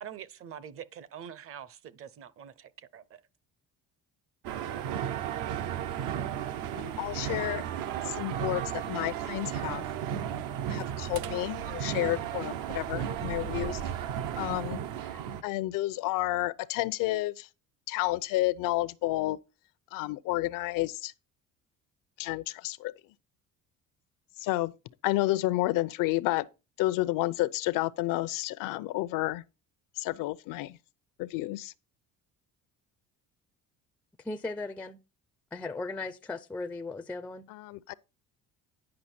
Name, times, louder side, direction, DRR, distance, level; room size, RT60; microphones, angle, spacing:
voice 1, 0.0-3.2, right 9 dB, 45° right, 0.7 m, -45 dB
sound 1, 4.4-15.4, right 9 dB, 75° right, 0.9 m, -34 dB
voice 2, 6.7-7.6 8.0-9.8 10.7-13.8 14.4-14.8 15.4-17.5 17.9-19.4 19.9-21.1 22.2-22.9 24.4-24.7 25.0-26.5 26.8-29.4 30.0-30.8 31.2-31.7 37.5-37.9, left 17 dB, 85° left, 0.7 m, -30 dB
voice 3, 34.2-35.0 35.5-37.5, left 3 dB, 5° left, 0.3 m, -37 dB
9.8 x 5.8 x 4.4 m
cardioid pair, 155°, 32 cm